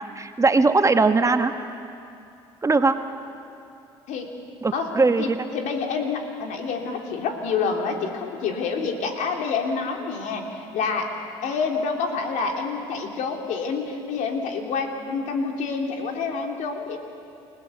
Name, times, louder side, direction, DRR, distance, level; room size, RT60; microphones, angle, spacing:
voice 1, 0.0-1.5 2.6-3.0 4.6-5.5, right 3 dB, 20° right, 7 dB, 1.4 m, -20 dB
voice 2, 5.2-11.1 11.4-17.0, left 5 dB, 65° left, 2 dB, 3.2 m, -27 dB
30.0 x 17.0 x 7.0 m, 2.6 s
hypercardioid pair, 65°, 14 cm